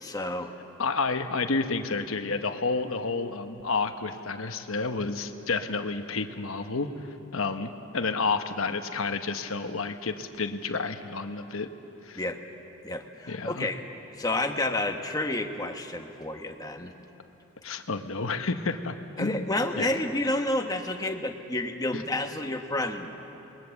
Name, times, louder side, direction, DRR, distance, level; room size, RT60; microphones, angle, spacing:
voice 1, 0.0-0.5 12.2-12.4 12.8-13.8 14.2-16.9 19.2-23.1, left 1 dB, 15° left, 4 dB, 1.2 m, -30 dB
voice 2, 0.8-6.9 7.3-11.7 12.0-12.2 13.3-13.7 17.6-19.9 21.9-22.0, left 4 dB, 75° left, 7 dB, 1.1 m, -30 dB
27.5 x 21.0 x 7.1 m, 2.8 s
head